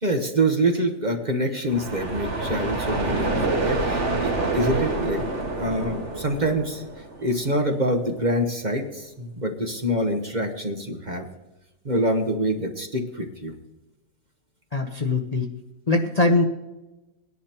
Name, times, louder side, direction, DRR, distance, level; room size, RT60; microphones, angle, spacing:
voice 1, 0.0-5.2 5.6-6.8 7.2-11.3 11.8-13.5, right 1 dB, 30° right, 4 dB, 1.2 m, -25 dB
sound 1, 1.7-7.4, right 2 dB, 50° right, 2.0 m, -27 dB
voice 2, 14.7-15.5 15.9-16.4, left 2 dB, 35° left, 2 dB, 0.8 m, -21 dB
19.0 x 10.5 x 2.9 m, 1.0 s
omnidirectional pair, 1.6 m